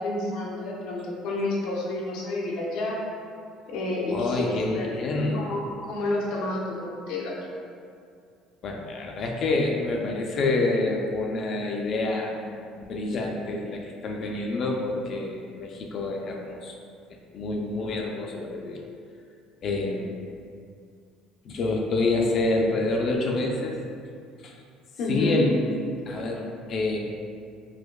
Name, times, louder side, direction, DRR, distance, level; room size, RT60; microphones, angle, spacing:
voice 1, 0.0-3.0 3.7-4.9 5.3-7.4 25.0-25.5, left 2 dB, 75° left, -4 dB, 0.7 m, -29 dB
voice 2, 4.1-5.4 8.6-12.3 12.8-16.8 17.3-18.8 19.6-20.3 21.4-23.8 24.4-24.5 25.1-25.6 26.1-27.0, left 2 dB, 40° left, 0 dB, 0.3 m, -27 dB
4.8 x 2.1 x 2.2 m, 2.3 s
cardioid pair, 150°, 0 cm